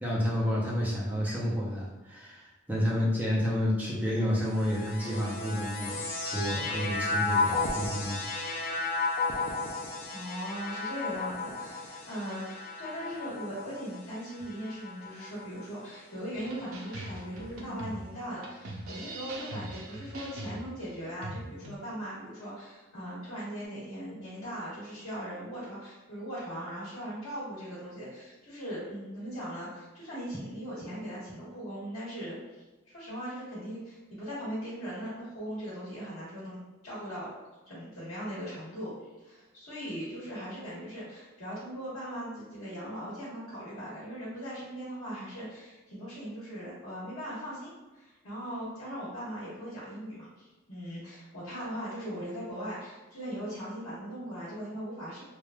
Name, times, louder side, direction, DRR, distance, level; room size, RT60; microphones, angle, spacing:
voice 1, 0.0-6.0 6.2-8.7, equal, 10° right, -6 dB, 0.6 m, -30 dB
sound 1, 4.4-15.9 16.7-17.4, left 3 dB, 45° left, 0.4 m, -34 dB
voice 2, 10.1-36.6 36.8-37.3 37.7-38.9 39.2-55.2, equal, 80° left, -9 dB, 1.2 m, -39 dB
sound 2, 16.3-21.8, right 1 dB, 75° right, 0.5 m, -41 dB
3.2 x 2.3 x 2.2 m, 1.1 s
head